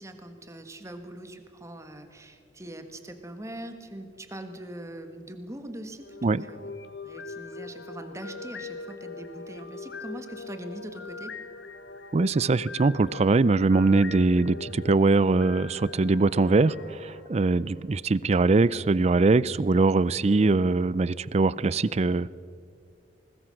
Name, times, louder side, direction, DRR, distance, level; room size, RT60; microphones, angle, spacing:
voice 1, 0.0-6.7 7.0-11.3, right 1 dB, 15° right, 7 dB, 1.5 m, -42 dB
sound 1, 5.9-18.1, left 4 dB, 85° left, 1.0 m, -41 dB
voice 2, 12.1-22.3, right 3 dB, 35° right, 20 dB, 0.4 m, -22 dB
21.0 x 20.0 x 6.4 m, 2.3 s
head